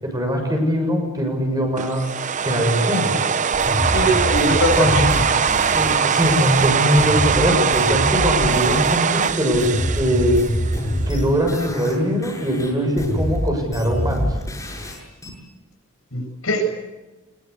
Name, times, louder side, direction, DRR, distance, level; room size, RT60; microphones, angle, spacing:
voice 1, 0.0-2.0 2.4-3.1 4.7-5.0 5.7-10.4 11.1-14.4, equal, 20° right, 3 dB, 7.1 m, -21 dB
sound 1, 1.8-11.0, right 6 dB, 35° right, 0.7 m, -21 dB
sound 2, 3.5-9.0 9.2-12.0 12.2-15.3, equal, 15° left, 7.3 m, -26 dB
voice 2, 3.9-5.2 16.1-16.6, equal, 75° left, 4 dB, 7.9 m, -22 dB
24.0 x 22.0 x 8.4 m, 1.1 s
head